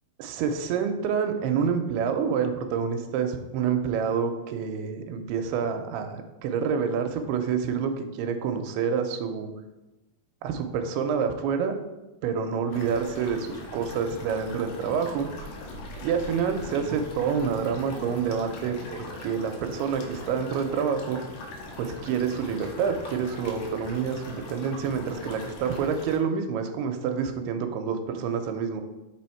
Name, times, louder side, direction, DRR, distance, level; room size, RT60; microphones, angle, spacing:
voice 1, 0.2-9.5 10.4-11.8 12.2-15.3 16.0-21.2 21.8-28.8, right 6 dB, 85° right, 6 dB, 2.6 m, -28 dB
sound 1, 12.7-26.2, left 2 dB, 75° left, 2.4 m, -41 dB
6.5 x 3.5 x 4.4 m, 1.0 s
omnidirectional pair, 4.6 m